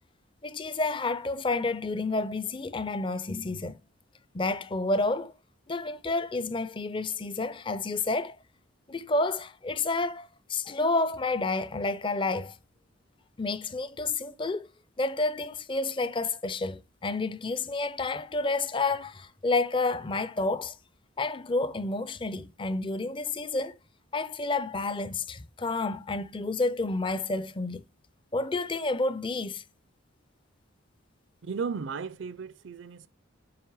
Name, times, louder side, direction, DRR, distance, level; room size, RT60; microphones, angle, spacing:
voice 1, 0.4-3.8 4.3-5.3 5.7-8.4 8.9-12.6 13.4-14.7 15.0-20.8 21.2-23.8 24.1-27.8 28.3-29.6, left 3 dB, 25° left, 0.4 m, -30 dB
voice 2, 31.4-33.1, right 5 dB, 60° right, 0.5 m, -35 dB
8.0 x 3.3 x 4.7 m
head